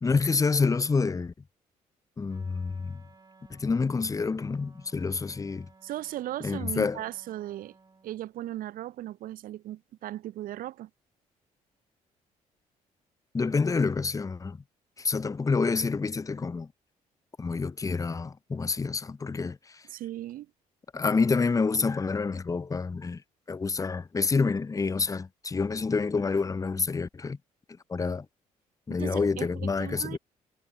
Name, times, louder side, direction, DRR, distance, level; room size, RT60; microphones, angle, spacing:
voice 1, 0.0-1.3 2.2-3.0 3.5-5.7 6.4-7.0 13.3-14.6 15.0-16.7 17.4-19.8 20.9-23.2 23.5-27.4 27.9-28.3 28.9-30.2, left 4 dB, 20° left, 0.6 m, -28 dB
Wind instrument woodwind instrument, 2.2-8.4, right 4 dB, 20° right, 3.3 m, -59 dB
voice 2, 5.8-7.8 8.0-10.9 19.9-20.5 29.0-30.2, right 14 dB, 50° right, 0.5 m, -37 dB
figure-of-eight pair, 45°, 18 cm